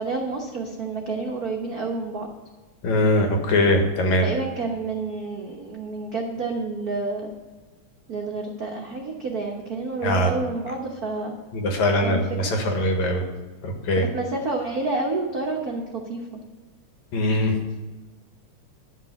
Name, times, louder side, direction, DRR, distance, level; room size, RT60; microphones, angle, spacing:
voice 1, 0.0-2.3 4.2-7.3 8.1-11.3 12.0-12.6 14.0-16.2, right 3 dB, 90° right, 1 dB, 0.8 m, -29 dB
voice 2, 2.8-4.3 10.0-10.3 11.5-13.2 13.6-14.1 17.1-17.6, left 1 dB, 75° left, 3 dB, 2.8 m, -21 dB
11.5 x 6.0 x 7.5 m, 1.2 s
omnidirectional pair, 3.3 m